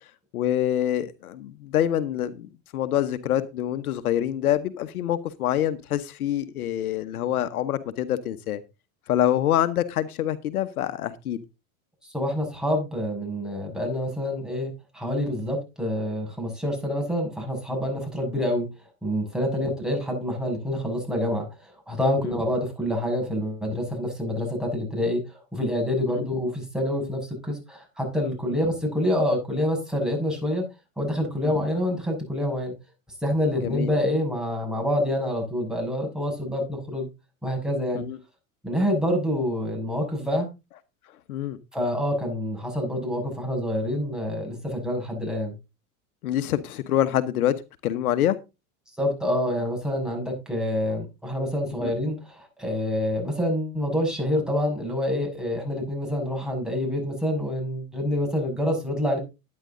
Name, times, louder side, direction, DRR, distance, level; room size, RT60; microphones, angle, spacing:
voice 1, 0.3-8.6 9.1-11.4 19.5-19.7 22.2-22.4 26.1-26.3 31.4-31.5 33.6-33.9 37.9-38.2 41.3-41.6 46.2-47.5 47.8-48.4 51.8-51.9, left 11 dB, 90° left, 13 dB, 1.1 m, -26 dB
voice 2, 12.0-18.7 19.0-25.2 25.5-30.6 31.0-32.7 33.2-37.1 37.4-38.0 38.6-40.5 41.7-45.5 49.0-59.2, left 1 dB, ahead, 1 dB, 6.2 m, -27 dB
11.0 x 9.7 x 3.8 m, 0.27 s
hypercardioid pair, 115°, 43 cm